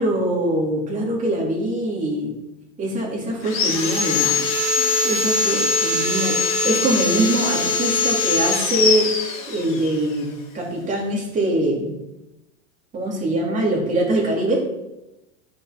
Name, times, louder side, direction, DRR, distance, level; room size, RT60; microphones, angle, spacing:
voice 1, 0.0-2.3 2.8-4.4 5.0-9.1 9.5-11.9 12.9-14.7, right 1 dB, 20° right, -1 dB, 2.7 m, -23 dB
Sawing, 3.4-9.9, left 3 dB, 35° left, 2.2 m, -22 dB
12.5 x 5.9 x 5.9 m, 0.94 s
supercardioid pair, 165°, 39 cm